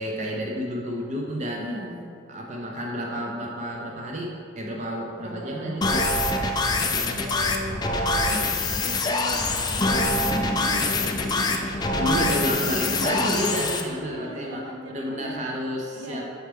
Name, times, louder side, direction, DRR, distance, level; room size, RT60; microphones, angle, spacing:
voice 1, 0.0-1.7 2.3-6.2 6.9-7.2 11.9-16.3, equal, 35° right, -1 dB, 0.5 m, -30 dB
voice 2, 1.6-2.0 5.1-5.8 6.9-11.3 13.5-15.6 15.9-16.3, equal, 80° right, 1 dB, 0.7 m, -38 dB
sound 1, 5.8-13.8, left 2 dB, 20° left, 0.3 m, -24 dB
6.3 x 4.5 x 3.4 m, 2.3 s
head